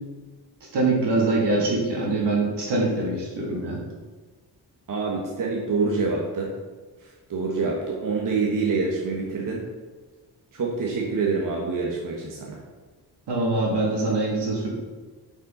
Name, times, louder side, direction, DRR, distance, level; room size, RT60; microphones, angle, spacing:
voice 1, 0.7-3.8 13.3-14.7, right 2 dB, 80° right, -2 dB, 2.3 m, -23 dB
voice 2, 4.9-6.5 7.3-9.6 10.5-12.6, right 4 dB, 50° right, -2 dB, 1.3 m, -26 dB
7.8 x 5.5 x 3.9 m, 1.3 s
cardioid pair, 105°, 41 cm